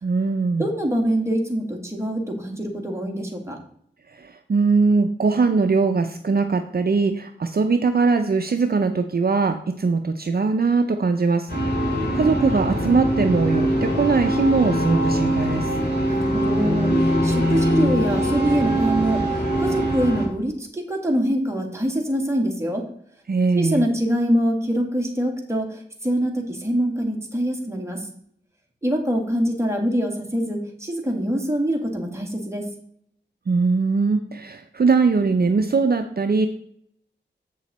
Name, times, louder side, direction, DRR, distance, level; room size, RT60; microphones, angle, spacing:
voice 1, 0.0-0.7 4.1-15.7 23.3-23.8 33.5-36.5, right 4 dB, 55° right, 7 dB, 0.6 m, -21 dB
voice 2, 0.6-3.6 16.1-22.9 23.5-28.1 28.8-32.6, equal, 15° right, 1 dB, 1.9 m, -24 dB
sound 1, 11.5-20.3, equal, 60° left, 3.9 m, -22 dB
8.0 x 6.3 x 4.2 m, 0.67 s
wide cardioid pair, 80°, 19 cm